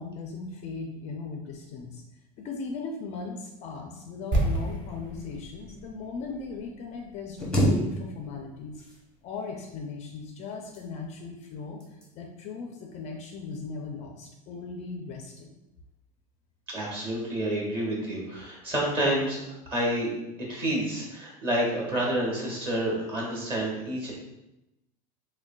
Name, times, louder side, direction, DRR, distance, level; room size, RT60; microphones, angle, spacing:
voice 1, 0.0-2.0 2.4-8.8 9.2-15.5, left 4 dB, 35° left, 2 dB, 0.4 m, -38 dB
sound 1, 4.3-8.2 8.5-8.6, right 2 dB, 45° right, 1.0 m, -32 dB
sound 2, 7.4-8.5 8.7-9.5 10.4-11.2 11.8-12.1 12.6-12.8, equal, 5° left, 0.8 m, -28 dB
voice 2, 16.7-19.4 19.7-20.1 20.5-24.1, right 1 dB, 30° right, -4 dB, 1.3 m, -29 dB
6.1 x 2.2 x 2.2 m, 0.92 s
cardioid pair, 155°, 19 cm